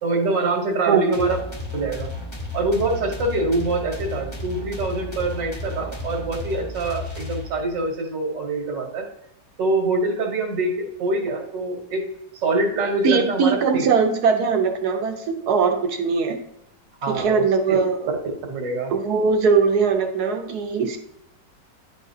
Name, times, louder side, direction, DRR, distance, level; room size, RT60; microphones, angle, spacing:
voice 1, 0.0-1.4 1.7-2.1 2.5-9.1 9.6-12.0 12.3-13.9 17.0-17.8 18.5-18.9, right 2 dB, 80° right, 2 dB, 2.1 m, -25 dB
voice 2, 0.9-1.3 13.0-16.4 17.1-18.1 18.9-21.0, right 5 dB, 65° right, 4 dB, 1.4 m, -20 dB
sound 1, 1.1-7.8, left 3 dB, 20° left, 1.1 m, -33 dB
10.5 x 4.9 x 2.7 m, 0.82 s
omnidirectional pair, 1.9 m